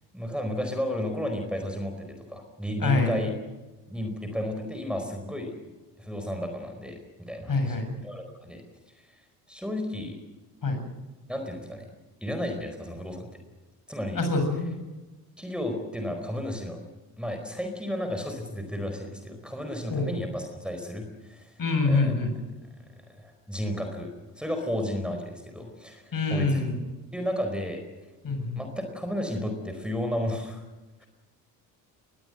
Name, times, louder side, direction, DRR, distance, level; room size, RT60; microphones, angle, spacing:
voice 1, 0.1-3.3 3.9-5.5 6.0-7.8 8.0-8.6 9.5-10.2 11.3-11.9 12.2-13.3 13.9-14.2 15.4-16.8 17.2-21.5 21.8-22.1 23.2-26.6 27.1-27.8 28.6-30.6, left 1 dB, ahead, 4 dB, 4.6 m, -33 dB
voice 2, 2.8-3.1 7.5-7.9 10.6-10.8 14.2-14.7 19.9-20.1 21.6-22.3 26.1-26.8 28.2-28.6, left 3 dB, 45° left, 6 dB, 7.5 m, -25 dB
21.5 x 19.0 x 7.9 m, 1.2 s
hypercardioid pair, 55°, 48 cm